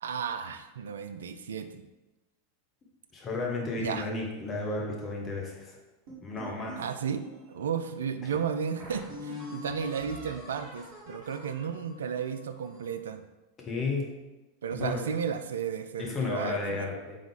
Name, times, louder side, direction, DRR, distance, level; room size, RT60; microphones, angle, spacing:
voice 1, 0.0-1.8 3.8-4.1 6.8-7.3 7.5-13.2 14.6-16.9, right 7 dB, 70° right, 9 dB, 0.3 m, -33 dB
voice 2, 3.1-5.8 6.2-6.8 8.2-8.3 13.6-14.1 14.8-15.0 16.0-17.2, left 3 dB, 30° left, -1 dB, 1.1 m, -33 dB
sound 1, 6.1-7.6 8.2-8.3 8.8-13.0, left 2 dB, 45° right, 1.3 m, -45 dB
3.8 x 3.6 x 3.3 m, 1.0 s
figure-of-eight pair, 85°, 0 cm